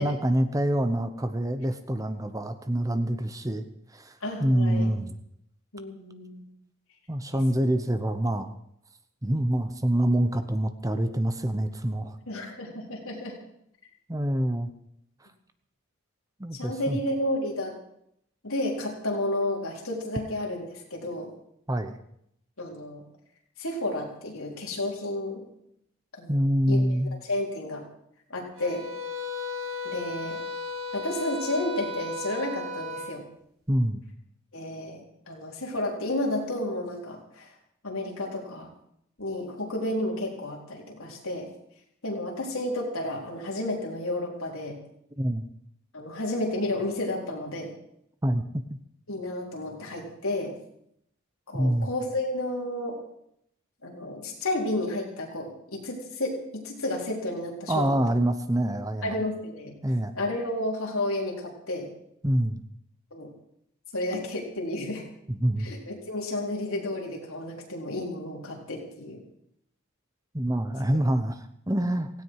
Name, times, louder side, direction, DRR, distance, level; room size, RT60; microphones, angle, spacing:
voice 1, 0.0-3.6 3.9-5.1 7.1-8.5 9.2-12.5 14.1-14.7 16.4-17.0 21.7-22.0 26.3-27.1 33.7-34.0 45.2-45.5 48.2-48.4 51.5-51.9 57.7-59.2 59.8-60.1 62.2-62.6 65.3-65.7 70.3-72.1, right 1 dB, 15° right, 9 dB, 0.9 m, -26 dB
voice 2, 4.2-4.9 5.7-6.4 12.3-13.4 16.5-17.8 18.4-20.6 20.9-21.3 22.6-23.1 23.6-25.4 26.2-26.4 26.7-26.8 27.3-27.9 28.3-28.8 29.8-30.4 30.9-33.2 34.5-37.5 37.8-38.7 39.2-41.5 42.0-44.8 45.9-47.8 49.1-50.5 51.5-53.0 53.8-58.0 59.0-59.8 60.1-61.9 63.1-63.3 63.9-65.0 65.6-69.2, left 1 dB, 75° left, -1 dB, 4.1 m, -31 dB
sound 1, 28.5-33.1, left 3 dB, 85° right, 5.1 m, -35 dB
17.0 x 16.5 x 4.8 m, 0.74 s
head